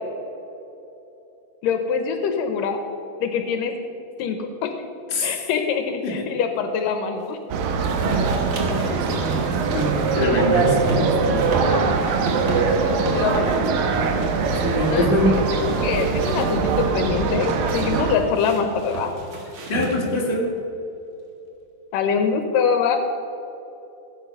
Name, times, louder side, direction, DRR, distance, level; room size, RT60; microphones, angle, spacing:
voice 1, 1.6-2.8 3.2-3.7 4.2-4.7 5.2-7.4 11.6-12.1 13.1-13.5 14.9-15.4 15.6-19.1 21.9-23.0, left 6 dB, 75° left, 6 dB, 2.5 m, -24 dB
voice 2, 5.1-5.4 6.0-6.1 8.7-9.5 9.7-11.3 14.6-15.4 19.7-20.5, left 1 dB, 20° left, -2 dB, 1.7 m, -23 dB
sound 1, 7.5-18.2, right 5 dB, 80° right, 2.7 m, -22 dB
sound 2, 7.8-15.0 15.3-16.9 17.7-20.3, right 3 dB, 45° right, 1.8 m, -32 dB
16.0 x 8.6 x 5.4 m, 3.0 s
omnidirectional pair, 4.0 m